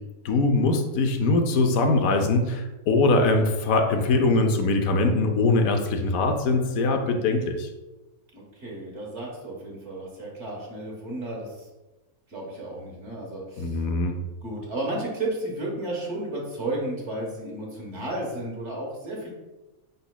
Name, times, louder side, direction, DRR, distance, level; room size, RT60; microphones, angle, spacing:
voice 1, 0.2-7.7 13.6-14.2, left 3 dB, 75° left, 5 dB, 1.0 m, -22 dB
voice 2, 8.3-11.7 12.3-13.8 14.4-19.3, right 1 dB, 55° right, -2 dB, 1.4 m, -33 dB
5.6 x 4.0 x 2.2 m, 1.1 s
omnidirectional pair, 1.5 m